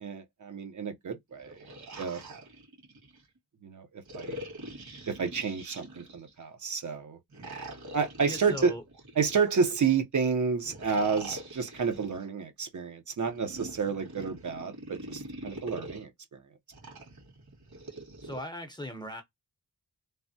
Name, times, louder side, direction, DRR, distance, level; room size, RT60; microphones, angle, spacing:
voice 1, 0.0-1.7 2.0-2.2 3.6-4.4 5.1-7.2 7.9-8.8 9.2-16.4, right 5 dB, 50° right, 0.6 m, -30 dB
sound 1, 1.3-3.2 4.1-6.4 7.3-9.8 10.6-12.3 13.2-16.0 16.7-18.4, right 1 dB, 70° right, 1.9 m, -44 dB
voice 2, 8.2-8.8 18.2-19.2, left 1 dB, 10° left, 0.6 m, -38 dB
3.3 x 2.1 x 2.6 m
wide cardioid pair, 115°, 38 cm